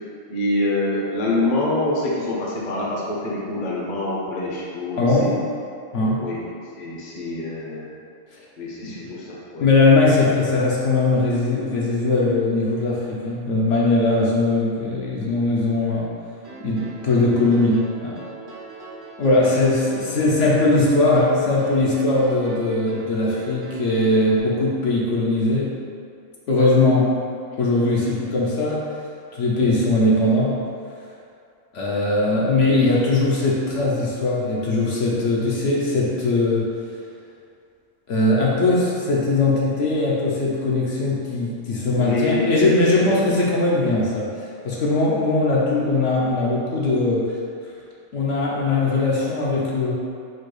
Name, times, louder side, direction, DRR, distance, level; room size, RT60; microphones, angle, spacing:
voice 1, 0.3-5.3 6.0-6.4 6.8-7.9 8.6-9.7 19.2-19.4 26.5-26.7 41.9-43.2, left 2 dB, 40° left, -4 dB, 0.7 m, -26 dB
voice 2, 5.0-5.3 5.9-6.3 8.3-8.4 8.8-9.0 9.6-16.1 16.6-18.2 19.2-25.7 26.5-27.1 27.6-28.8 29.3-30.6 31.7-36.7 38.1-47.4 48.1-49.9, left 2 dB, 65° left, -4 dB, 0.9 m, -20 dB
sound 1, 16.4-24.4, right 1 dB, 25° right, 0.5 m, -40 dB
4.4 x 2.3 x 4.7 m, 2.4 s
omnidirectional pair, 1.5 m